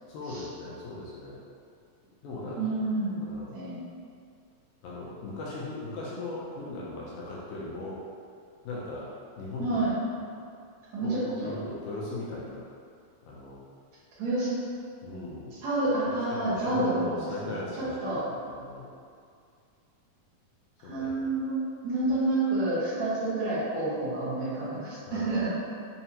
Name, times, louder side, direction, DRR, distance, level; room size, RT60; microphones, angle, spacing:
voice 1, 0.1-1.4 2.2-2.9 3.3-3.6 4.8-8.0 8.6-9.8 11.0-11.1 11.4-12.7 13.2-13.6 15.0-15.6 16.3-18.9 20.8-21.1 25.1-25.3, left 2 dB, 80° left, -6 dB, 1.8 m, -38 dB
voice 2, 2.6-3.3 3.5-3.8 9.6-9.9 10.9-11.6 14.2-14.6 15.6-18.2 20.8-25.5, right 2 dB, 70° right, -10 dB, 1.8 m, -29 dB
5.6 x 2.1 x 2.7 m, 2.3 s
omnidirectional pair, 4.0 m